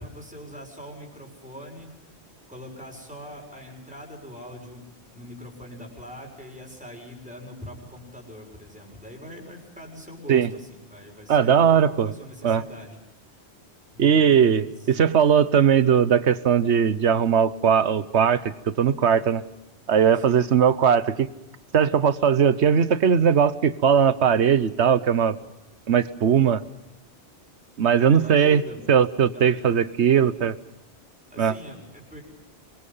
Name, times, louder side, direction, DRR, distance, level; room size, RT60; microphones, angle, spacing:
voice 1, 0.0-1.9 2.5-4.8 5.1-13.0 13.9-15.0 20.1-20.5 28.0-28.8 29.3-29.6 31.3-32.2, equal, 5° right, 1 dB, 6.3 m, -42 dB
voice 2, 11.3-12.1 12.4-12.6 14.0-19.4 19.9-21.3 21.7-25.3 25.9-26.6 27.8-28.6 28.9-30.5 31.4-31.5, right 7 dB, 85° right, 14 dB, 1.3 m, -19 dB
26.5 x 22.5 x 5.6 m, 0.96 s
omnidirectional pair, 1.1 m